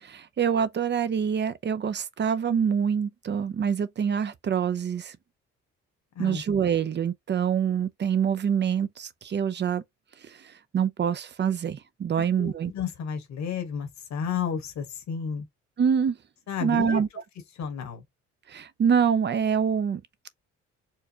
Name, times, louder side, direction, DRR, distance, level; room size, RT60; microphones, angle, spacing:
voice 1, 0.0-5.2 6.2-9.8 10.2-10.4 10.7-12.7 15.8-16.2 16.6-17.1 18.5-20.0, right 7 dB, 40° right, 0.5 m, -25 dB
voice 2, 12.1-15.5 16.5-17.0 17.6-18.0, left 7 dB, 70° left, 1.3 m, -32 dB
4.5 x 2.2 x 2.8 m
cardioid pair, 80°, 29 cm